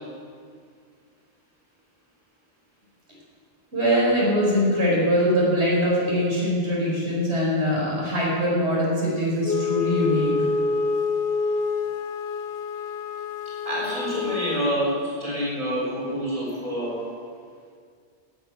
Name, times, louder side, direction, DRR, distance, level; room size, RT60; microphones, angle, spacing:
voice 1, 3.7-10.5, equal, 70° right, -5 dB, 4.8 m, -22 dB
Wind instrument woodwind instrument, 9.4-14.7, left 5 dB, 90° left, 1.1 m, -27 dB
voice 2, 13.6-17.0, equal, 30° right, -6 dB, 4.0 m, -27 dB
12.5 x 8.1 x 9.0 m, 2.1 s
omnidirectional pair, 1.1 m